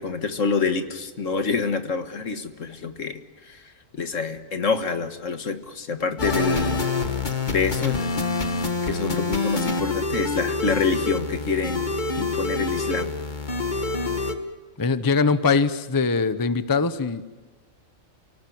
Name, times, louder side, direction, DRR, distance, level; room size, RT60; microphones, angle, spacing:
voice 1, 0.0-3.6 3.9-6.8 7.5-8.1 8.9-11.9 12.2-13.1, left 4 dB, 70° left, 8 dB, 1.9 m, -27 dB
sound 1, 6.2-14.3, left 3 dB, 35° left, 1.6 m, -26 dB
voice 2, 14.8-17.2, left 4 dB, 20° left, 12 dB, 0.8 m, -22 dB
28.5 x 18.5 x 9.3 m, 1.2 s
omnidirectional pair, 1.3 m